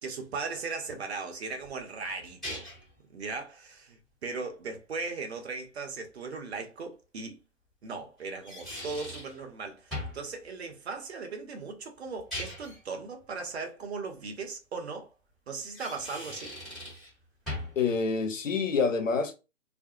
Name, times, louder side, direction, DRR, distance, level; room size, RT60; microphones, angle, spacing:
voice 1, 0.0-2.6 3.1-7.4 7.8-15.1 15.5-16.6, right 4 dB, 55° right, 0.8 m, -38 dB
sound 1, 1.6-2.9 6.2-6.3 8.2-9.4 9.9-10.2 12.1-12.8 15.6-17.1 17.5-17.8, left 1 dB, ahead, 1.1 m, -39 dB
voice 2, 17.8-19.3, left 5 dB, 70° left, 0.8 m, -27 dB
2.4 x 2.0 x 2.9 m
figure-of-eight pair, 135°, 39 cm